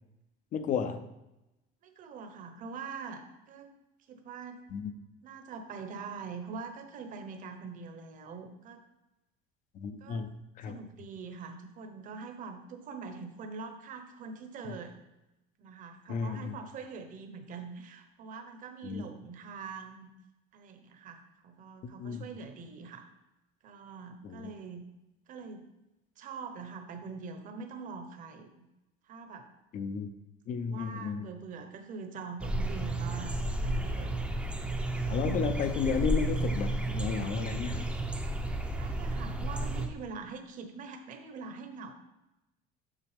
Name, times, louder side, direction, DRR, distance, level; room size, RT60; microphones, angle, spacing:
voice 1, 0.5-1.0 4.7-4.9 9.7-10.3 10.6-10.8 16.1-16.5 18.8-19.0 21.8-22.3 24.2-24.5 29.7-30.1 30.5-31.3 35.1-37.9, left 6 dB, 40° left, 10 dB, 0.5 m, -33 dB
voice 2, 1.8-3.7 4.1-4.7 5.2-8.8 10.0-10.3 10.6-14.9 15.6-20.1 20.5-23.1 23.6-24.8 25.3-25.7 26.2-28.7 29.1-29.5 30.7-33.4 33.6-34.2 38.7-41.9, right 5 dB, 40° right, 6 dB, 0.9 m, -44 dB
sound 1, 32.4-39.9, right 2 dB, 5° right, 0.6 m, -32 dB
7.4 x 6.0 x 3.4 m, 0.95 s
cardioid pair, 150°, 20 cm